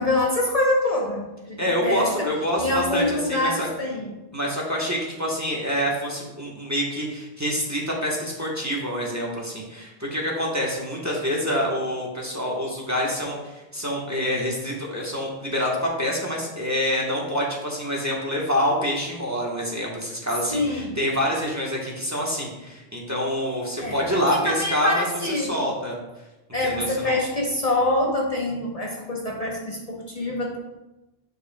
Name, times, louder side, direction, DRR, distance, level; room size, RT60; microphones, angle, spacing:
voice 1, 0.0-2.3 2.6-4.1 20.5-21.0 23.8-25.6 26.5-30.6, left 2 dB, 40° left, -2 dB, 0.9 m, -25 dB
voice 2, 1.6-3.7 4.3-25.0 25.4-26.0 26.6-27.2, equal, 15° right, -3 dB, 1.1 m, -26 dB
9.8 x 5.2 x 2.3 m, 1.0 s
omnidirectional pair, 1.0 m